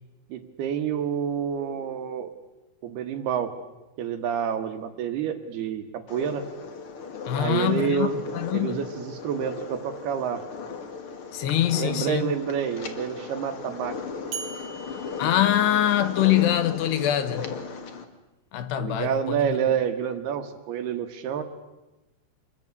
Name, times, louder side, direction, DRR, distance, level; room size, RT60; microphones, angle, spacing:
voice 1, 0.3-2.3 2.8-3.5 4.0-6.5 7.4-8.2 8.5-10.4 11.8-14.0 18.8-21.4, right 8 dB, 65° right, 3.2 m, -28 dB
sound 1, 6.1-18.0, left 5 dB, 50° left, 1.7 m, -37 dB
voice 2, 7.3-8.8 11.3-12.3 15.2-17.5 18.5-19.5, left 12 dB, 70° left, 3.1 m, -24 dB
sound 2, 14.3-16.4, right 5 dB, 85° right, 1.2 m, -40 dB
27.5 x 21.5 x 9.6 m
omnidirectional pair, 5.3 m